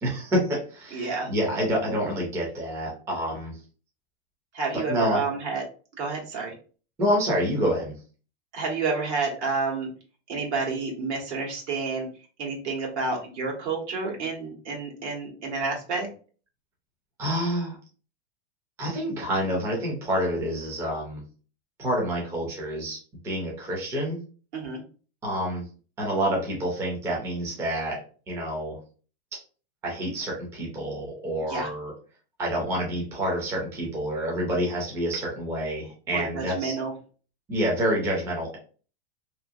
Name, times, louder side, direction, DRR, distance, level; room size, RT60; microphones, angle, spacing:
voice 1, 0.0-3.6 4.7-5.2 7.0-7.9 17.2-17.8 18.8-21.2 21.8-23.0 23.2-24.2 25.2-25.6 26.0-28.0 28.3-28.7 29.3-29.4 29.8-31.9 32.4-36.8 37.5-38.6, equal, 10° right, -2 dB, 0.5 m, -28 dB
voice 2, 0.9-1.3 4.5-5.6 6.0-6.5 8.5-9.9 10.3-12.1 12.4-16.1 24.5-24.8 31.5-31.7 36.1-36.9, right 4 dB, 90° right, -1 dB, 1.4 m, -29 dB
2.8 x 2.6 x 2.4 m, 0.38 s
supercardioid pair, 160°, 33 cm